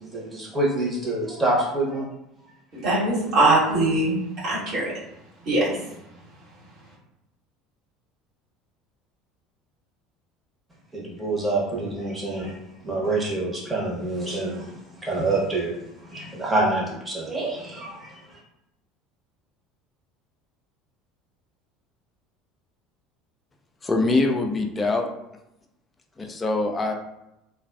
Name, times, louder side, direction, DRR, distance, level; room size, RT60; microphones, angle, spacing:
voice 1, 0.0-2.1 10.9-12.5 12.8-15.7 16.0-18.2, right 2 dB, 15° right, -4 dB, 1.0 m, -26 dB
voice 2, 2.7-4.2 4.4-4.8 5.4-5.7, right 2 dB, 50° right, -7 dB, 1.4 m, -21 dB
voice 3, 23.8-25.1 26.2-26.9, left 2 dB, 25° left, 3 dB, 0.4 m, -23 dB
2.3 x 2.3 x 2.3 m, 0.86 s
figure-of-eight pair, 65°, 0 cm